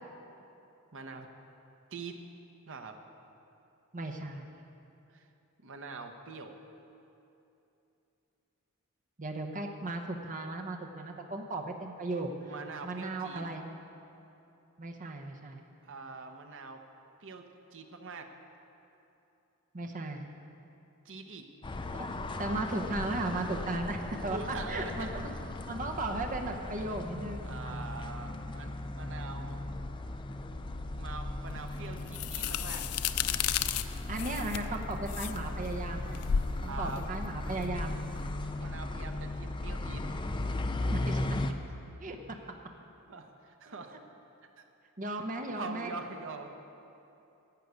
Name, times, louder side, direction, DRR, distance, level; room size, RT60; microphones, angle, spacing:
voice 1, 0.9-1.3 1.9-2.3 2.7-3.0 5.1-5.3 5.6-6.5 12.5-13.4 15.8-16.8 17.2-17.4 17.7-18.3 21.0-21.5 24.3-25.1 27.4-29.6 31.0-32.8 36.7-37.0 38.2-40.1 43.1-44.0 44.6-44.7 45.6-46.5, right 4 dB, 60° right, 5 dB, 1.0 m, -44 dB
voice 2, 3.9-4.5 9.2-12.3 12.8-13.6 14.8-15.6 19.7-20.2 21.9-22.1 22.4-24.4 24.7-25.3 25.7-27.9 34.1-36.2 36.6-38.0 40.9-41.2 42.0-42.2 45.0-45.9, right 2 dB, 35° right, 2 dB, 0.9 m, -36 dB
sound 1, 21.6-41.5, left 2 dB, 20° left, 0.5 m, -37 dB
sound 2, 31.5-38.3, left 8 dB, 75° left, 0.4 m, -34 dB
11.5 x 7.6 x 8.3 m, 2.8 s
head